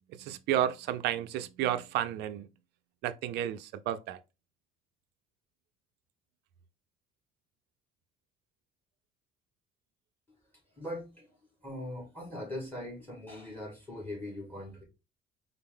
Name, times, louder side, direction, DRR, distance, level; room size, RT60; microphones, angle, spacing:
voice 1, 0.1-2.5 3.0-4.2, right 11 dB, 80° right, 0.4 m, -32 dB
voice 2, 10.8-11.3 11.6-14.8, left 1 dB, 10° left, 1.9 m, -40 dB
4.2 x 2.0 x 3.6 m
cardioid pair, 110°, 17 cm